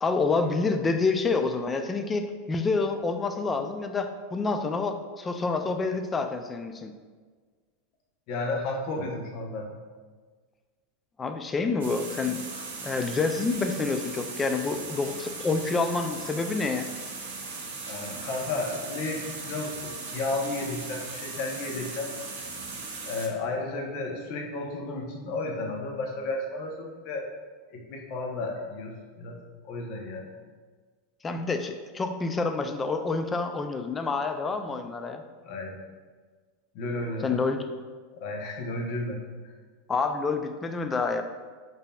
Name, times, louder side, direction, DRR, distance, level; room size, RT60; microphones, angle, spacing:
voice 1, 0.0-6.9 11.2-12.4 12.8-16.9 31.2-35.2 37.2-37.6 39.9-41.2, left 4 dB, 20° left, 7 dB, 0.3 m, -28 dB
voice 2, 8.3-9.8 17.9-22.1 23.1-27.3 27.7-29.4 29.6-30.3 35.4-35.8 36.7-37.3 38.2-39.5, left 2 dB, 55° left, 1 dB, 0.7 m, -33 dB
sound 1, 11.8-23.3, right 4 dB, 85° right, 0.7 m, -38 dB
5.0 x 2.6 x 2.2 m, 1.5 s
supercardioid pair, 115°, 0 cm